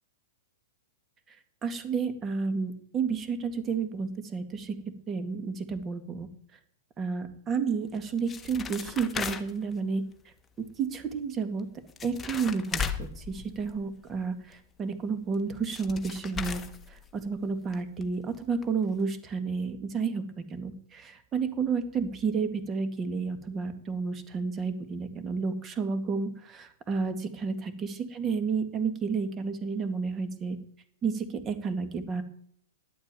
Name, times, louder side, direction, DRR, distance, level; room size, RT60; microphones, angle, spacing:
voice 1, 1.6-6.3 7.0-10.1 10.6-11.7 12.0-30.6 31.0-32.2, right 5 dB, 25° right, 9 dB, 2.0 m, -31 dB
sound 1, 7.9-9.7 11.6-11.7 11.9-14.1 15.3-15.4 15.7-17.4 17.7-17.8 18.0-18.1 18.6-18.7 19.0-19.1, left 6 dB, 15° left, 1.3 m, -36 dB
11.0 x 8.8 x 9.2 m, 0.65 s
hypercardioid pair, 125°, 0 cm